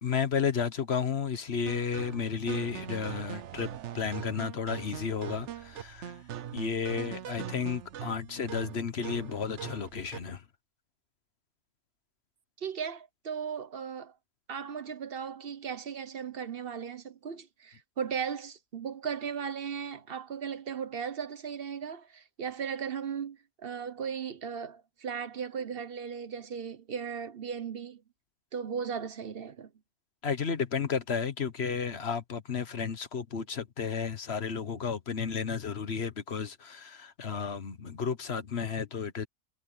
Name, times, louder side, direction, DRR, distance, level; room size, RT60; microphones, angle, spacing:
voice 1, 0.0-6.2 6.5-10.4 30.2-39.3, left 6 dB, 55° left, 1.4 m, -32 dB
sound 1, 1.7-10.4, right 10 dB, 70° right, 1.1 m, -41 dB
voice 2, 12.6-14.1 14.5-28.0 28.5-29.7, right 7 dB, 50° right, 1.2 m, -37 dB
omnidirectional pair, 1.3 m